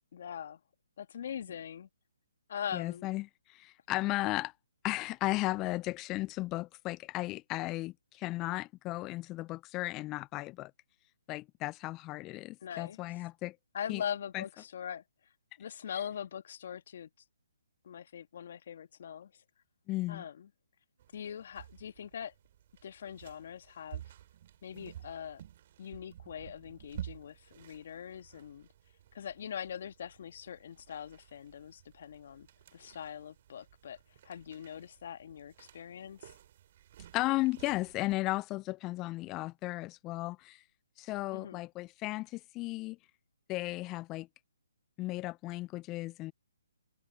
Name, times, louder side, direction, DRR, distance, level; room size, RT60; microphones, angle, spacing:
voice 1, 0.1-0.6 1.0-1.9 2.5-3.1 12.6-13.0 13.7-15.0 15.6-17.1 17.8-19.3 20.1-20.5 21.1-22.3 22.8-24.0 24.6-25.4 25.8-28.7 29.1-34.0 34.2-36.3 41.3-41.6, left 8 dB, 55° left, 1.6 m, -42 dB
voice 2, 2.7-4.5 4.8-10.7 11.3-13.6 13.9-14.0 14.3-14.4 19.9-20.2 37.1-40.6 41.0-43.0 43.5-44.3 45.0-46.3, left 19 dB, 20° left, 0.4 m, -35 dB
sound 1, 21.0-38.1, right 11 dB, 45° right, 3.5 m, -52 dB
figure-of-eight pair, 140°, 0 cm